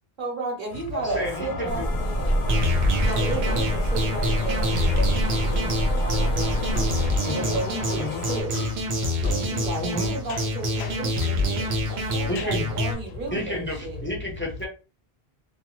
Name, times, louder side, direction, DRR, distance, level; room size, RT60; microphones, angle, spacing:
voice 1, 0.2-2.5 3.0-6.7 7.3-8.6 9.2-14.0, right 3 dB, 55° right, 1.0 m, -33 dB
voice 2, 0.9-1.8 7.2-7.6 7.9-8.3 9.8-10.1 12.3-12.7 13.3-14.7, left 1 dB, 15° left, 0.4 m, -31 dB
sound 1, 1.2-8.4, left 5 dB, 60° left, 0.7 m, -35 dB
sound 2, 1.7-7.1, right 1 dB, 35° right, 0.8 m, -26 dB
voice 3, 2.3-3.2 5.9-7.2 8.5-8.8 9.2-9.4 10.3-10.4 10.8-10.9 11.2-11.4 12.4-12.5, left 4 dB, 90° left, 0.9 m, -35 dB
sound 3, 2.5-12.9, left 1 dB, 90° right, 1.0 m, -27 dB
2.5 x 2.3 x 3.0 m
omnidirectional pair, 1.0 m